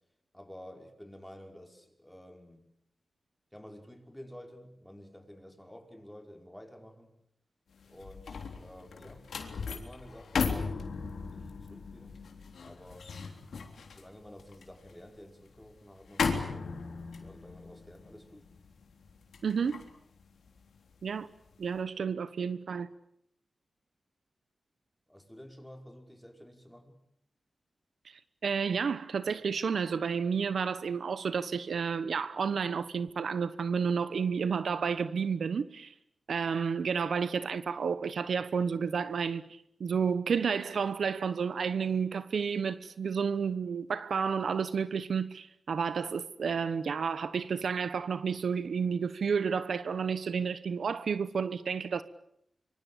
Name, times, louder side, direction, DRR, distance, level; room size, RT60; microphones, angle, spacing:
voice 1, 0.3-2.7 3.5-7.1 7.8-11.0 11.3-12.2 12.6-13.1 13.9-16.9 17.2-18.5 25.1-27.0, equal, 5° left, 5.5 m, -51 dB
sound 1, 7.8-21.1 21.5-21.8, left 5 dB, 85° left, 3.6 m, -37 dB
voice 2, 19.4-19.8 21.0-21.3 21.6-22.9 28.4-35.9 36.3-39.4 39.8-52.0, right 6 dB, 80° right, 1.1 m, -31 dB
25.5 x 24.5 x 8.5 m
wide cardioid pair, 75°, 0 cm